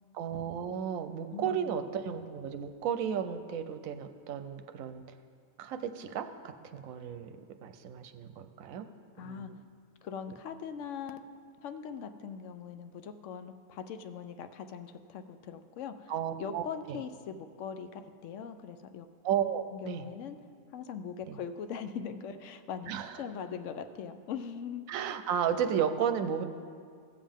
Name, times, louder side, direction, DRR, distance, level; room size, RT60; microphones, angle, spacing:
voice 1, 0.1-5.0 5.6-7.3 7.6-8.9 9.2-9.6 16.1-17.0 19.2-20.1 21.3-21.4 22.9-23.2 24.9-26.4, right 8 dB, 80° right, 9 dB, 1.0 m, -33 dB
voice 2, 1.3-1.8 9.2-9.5 10.0-11.2 11.6-16.1 16.4-19.1 19.7-20.4 20.7-22.9 23.2-24.9, left 7 dB, 70° left, 9 dB, 0.9 m, -41 dB
16.0 x 7.3 x 3.5 m, 2.2 s
omnidirectional pair, 1.4 m